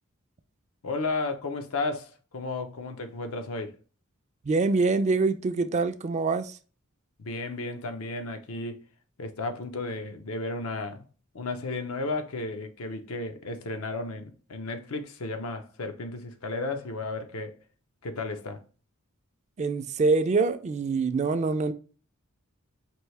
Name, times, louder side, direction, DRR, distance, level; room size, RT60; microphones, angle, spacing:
voice 1, 0.8-3.7 7.2-8.8 9.2-11.1 11.3-17.6 18.0-18.6, left 3 dB, 85° left, 0.7 m, -33 dB
voice 2, 4.4-6.6 19.6-21.7, right 3 dB, 35° right, 0.3 m, -25 dB
4.5 x 2.7 x 3.2 m
head